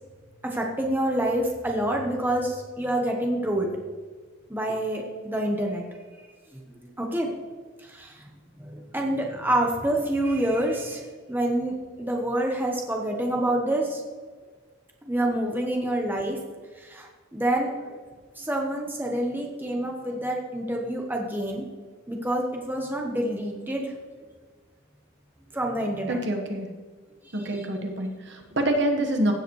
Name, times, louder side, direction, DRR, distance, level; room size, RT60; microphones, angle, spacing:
voice 1, 0.4-3.7 4.5-5.8 6.5-7.3 7.8-8.2 8.6-14.0 15.0-16.4 16.7-18.0 18.4-21.6 22.1-23.9 25.5-26.2 27.2-27.7, right 1 dB, 10° right, 0 dB, 1.0 m, -27 dB
voice 2, 26.1-26.7 27.3-29.3, right 1 dB, 55° right, 3 dB, 1.4 m, -26 dB
16.0 x 7.9 x 3.2 m, 1.4 s
head